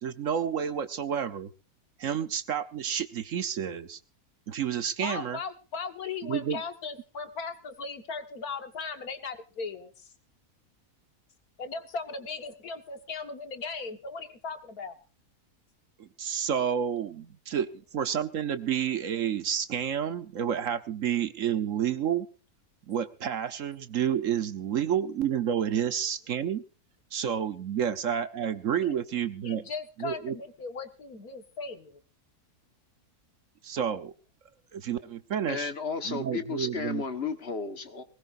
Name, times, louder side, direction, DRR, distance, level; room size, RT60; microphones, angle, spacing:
voice 1, 0.0-1.5 2.0-4.0 4.5-5.4 6.2-6.6 16.2-17.7 17.9-22.3 22.9-26.6 27.1-29.6 30.0-30.4 33.6-34.1 34.7-35.7 36.0-37.0, right 8 dB, 60° right, 12 dB, 1.2 m, -30 dB
voice 2, 5.0-10.1 11.6-14.9 28.8-29.0 29.4-31.8, left 4 dB, 70° left, 7 dB, 2.1 m, -38 dB
voice 3, 35.5-38.0, left 5 dB, 45° left, 9 dB, 1.6 m, -33 dB
20.5 x 19.0 x 2.6 m, 0.34 s
omnidirectional pair, 1.6 m